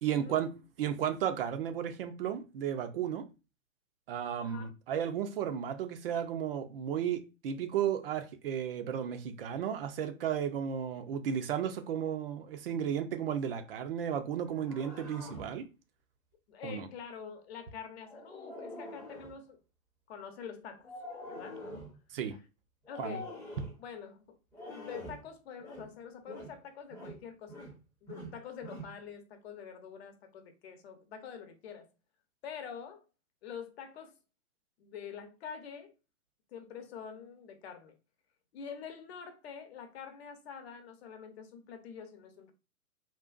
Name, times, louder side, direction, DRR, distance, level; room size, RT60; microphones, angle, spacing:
voice 1, 0.0-3.3 4.1-15.7 16.6-16.9 22.1-22.4 23.0-23.2, right 9 dB, 40° right, 0.5 m, -34 dB
voice 2, 4.4-4.7 16.5-19.6 20.1-20.9 21.3-21.7 22.9-23.3 23.8-24.4 24.6-27.6 28.0-31.9 32.4-33.0 33.4-34.1 34.8-35.9 36.5-38.0 38.5-42.5, left 7 dB, 45° left, 0.9 m, -46 dB
sound 1, 14.5-15.6 18.0-19.4 20.8-22.0 22.9-23.8 24.5-25.3 25.6-25.9 26.3-26.6 26.9-27.8 28.1-29.0, left 1 dB, 5° left, 0.7 m, -45 dB
3.8 x 2.4 x 2.4 m
figure-of-eight pair, 120°, 43 cm